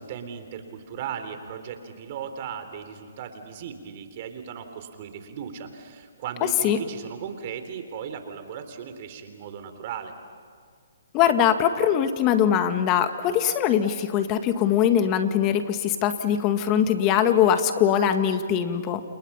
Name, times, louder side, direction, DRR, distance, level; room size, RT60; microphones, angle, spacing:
voice 1, 0.0-10.1, right 7 dB, 40° right, 8 dB, 3.6 m, -37 dB
voice 2, 11.1-19.0, left 9 dB, 25° left, 8 dB, 1.9 m, -22 dB
30.0 x 29.0 x 5.8 m, 2.1 s
hypercardioid pair, 150°, 0 cm